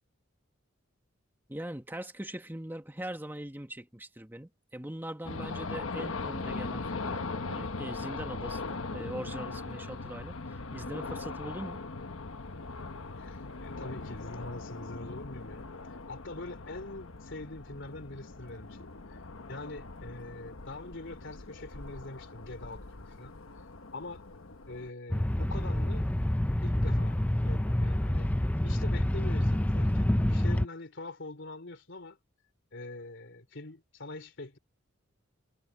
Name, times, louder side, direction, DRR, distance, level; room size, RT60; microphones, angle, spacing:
voice 1, 1.5-11.8, right 1 dB, 10° right, 1.6 m, -41 dB
sound 1, 5.2-24.9, left 3 dB, 80° left, 1.3 m, -40 dB
voice 2, 13.2-23.3 23.9-24.2 24.7-26.1 26.6-28.3 28.6-32.2 32.7-34.6, left 2 dB, 65° left, 3.1 m, -44 dB
sound 2, 25.1-30.7, left 1 dB, 5° left, 0.5 m, -27 dB
head